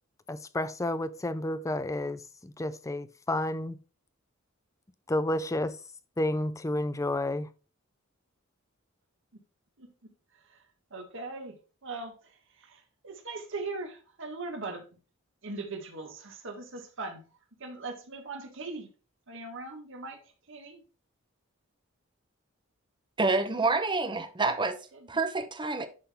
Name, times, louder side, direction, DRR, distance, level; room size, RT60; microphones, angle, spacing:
voice 1, 0.3-3.8 5.1-5.8 6.2-7.5, left 1 dB, 15° left, 0.5 m, -31 dB
voice 2, 9.8-10.1 10.4-10.6 10.9-11.6 11.8-14.9 15.4-17.3 17.6-18.9 19.3-20.2 20.5-20.8 24.9-25.1, right 3 dB, 65° right, 1.6 m, -40 dB
voice 3, 23.2-24.8 25.1-25.9, right 3 dB, 25° right, 0.9 m, -27 dB
11.0 x 3.9 x 3.6 m
head